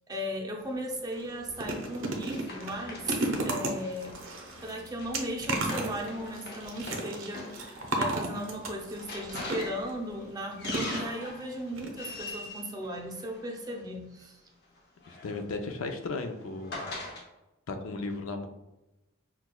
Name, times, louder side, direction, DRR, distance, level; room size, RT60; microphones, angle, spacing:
voice 1, 0.0-4.2 4.6-14.4, equal, 20° right, 0 dB, 0.5 m, -37 dB
sound 1, 0.6-0.7 1.1-9.9 10.6-11.4 11.8-11.9 12.2-12.3, right 2 dB, 70° right, 0.6 m, -34 dB
Run, 1.1-13.8 14.8-17.2, left 2 dB, 55° left, 0.8 m, -43 dB
voice 2, 15.1-16.9 17.7-18.5, left 3 dB, 80° left, 5 dB, 0.5 m, -35 dB
5.9 x 2.3 x 2.2 m, 0.97 s
head